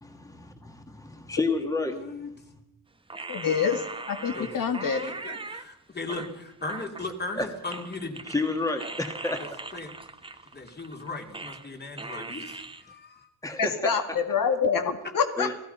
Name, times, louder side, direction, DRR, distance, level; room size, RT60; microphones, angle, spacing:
voice 1, 0.0-2.0 7.4-7.5 8.3-9.7 13.4-14.2 15.4-15.5, left 3 dB, 10° left, 5 dB, 1.9 m, -30 dB
voice 2, 1.8-2.3 4.3-4.6 5.0-8.2 9.2-9.9 10.5-13.3, left 3 dB, 30° left, 4 dB, 3.1 m, -38 dB
sound 1, 3.1-5.6 6.1-7.4 7.7-11.7 12.0-12.8, right 3 dB, 15° right, 1.0 m, -40 dB
voice 3, 3.3-3.8 4.1-5.0 13.6-15.6, left 6 dB, 75° left, 6 dB, 2.1 m, -26 dB
30.0 x 18.5 x 5.7 m, 0.82 s
wide cardioid pair, 165°, 34 cm